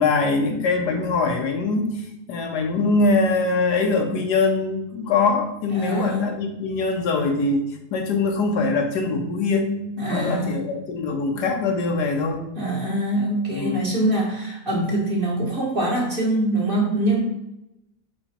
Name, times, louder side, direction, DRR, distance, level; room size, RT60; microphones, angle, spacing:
voice 1, 0.0-1.9 2.3-7.6 7.9-9.8 10.1-12.4 13.5-13.8, left 3 dB, 80° left, 4 dB, 1.5 m, -22 dB
voice 2, 5.7-6.3 10.0-10.7 12.5-17.2, right 1 dB, 35° right, -3 dB, 1.5 m, -24 dB
5.0 x 4.7 x 4.3 m, 0.85 s
omnidirectional pair, 1.7 m